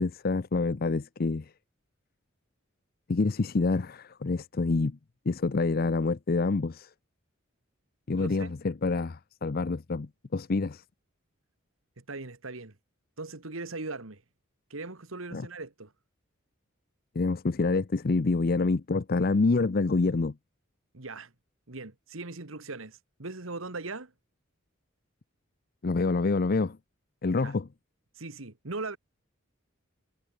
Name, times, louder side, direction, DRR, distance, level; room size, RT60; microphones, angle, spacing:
voice 1, 0.0-1.5 3.1-5.0 5.3-6.9 8.1-10.8 15.3-15.5 17.2-20.3 25.8-26.8 27.2-27.7, left 3 dB, 45° left, 0.5 m, -27 dB
voice 2, 8.2-8.5 12.0-12.7 13.2-14.2 14.7-15.9 20.9-21.3 21.7-24.1 27.4-27.5 28.1-29.0, right 3 dB, 80° right, 1.9 m, -39 dB
head